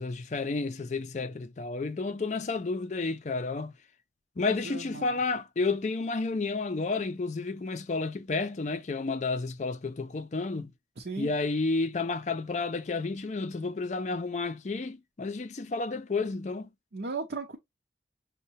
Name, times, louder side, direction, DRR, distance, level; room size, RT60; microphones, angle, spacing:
voice 1, 0.0-3.8 4.4-10.7 11.2-16.7, left 3 dB, 40° left, 0.4 m, -31 dB
voice 2, 4.4-5.2 11.0-11.3 16.9-17.6, right 3 dB, 60° right, 0.7 m, -37 dB
6.4 x 2.2 x 2.7 m
head